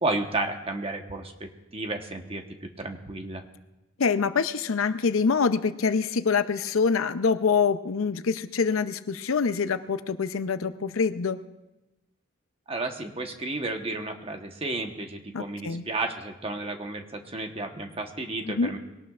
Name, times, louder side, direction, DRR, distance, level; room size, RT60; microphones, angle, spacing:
voice 1, 0.0-2.4 2.8-3.4 12.7-18.8, right 2 dB, 25° right, 4 dB, 1.1 m, -32 dB
voice 2, 4.0-11.4 15.3-15.8 18.5-18.7, left 5 dB, 80° left, 11 dB, 0.6 m, -25 dB
22.5 x 18.0 x 2.5 m, 1.0 s
head